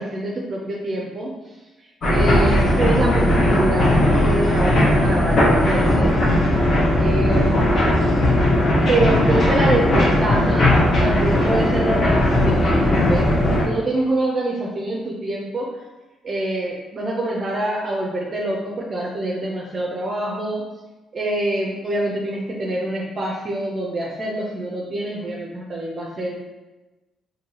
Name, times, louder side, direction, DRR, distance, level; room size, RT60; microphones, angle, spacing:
voice 1, 0.0-1.3 2.1-6.1 7.0-7.9 8.9-10.7 11.0-15.7 16.2-20.6 21.1-26.3, right 1 dB, 40° right, -3 dB, 0.5 m, -25 dB
sound 1, 2.0-13.6, left 1 dB, 55° left, 0.9 m, -17 dB
4.5 x 2.7 x 2.8 m, 1.1 s
cardioid pair, 90°, 0 cm